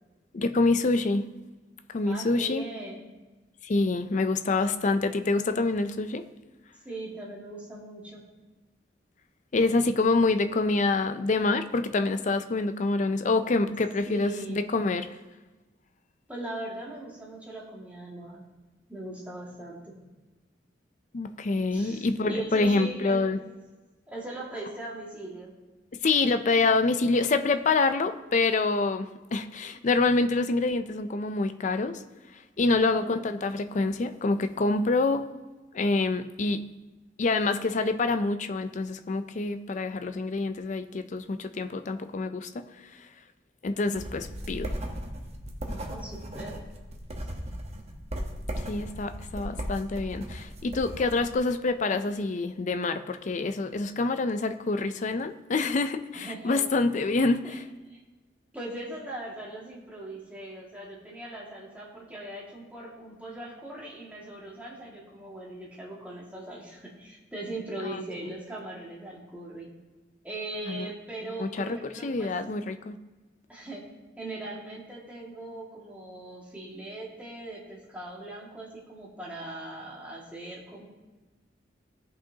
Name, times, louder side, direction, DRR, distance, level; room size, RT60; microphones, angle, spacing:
voice 1, 0.3-1.3 1.9-2.7 3.6-6.2 9.5-15.2 21.1-23.4 26.0-32.0 32.6-35.2 35.7-36.7 37.2-42.7 43.6-44.7 48.7-57.6 67.9-68.0 70.7-70.9 71.4-73.0, left 3 dB, 40° left, 9 dB, 0.4 m, -26 dB
voice 2, 2.1-3.0 6.8-8.2 14.1-14.6 16.3-18.4 18.9-19.9 21.7-23.2 24.1-25.5 32.7-33.2 44.3-44.9 45.6-46.6 56.1-56.6 57.4-57.6 57.9-58.0 58.5-69.7 70.2-72.3 73.5-73.8 74.2-80.8, right 2 dB, 10° right, -5 dB, 2.0 m, -40 dB
sound 1, 43.9-51.3, equal, 35° right, 1.0 m, -37 dB
16.0 x 5.5 x 2.8 m, 1.2 s
head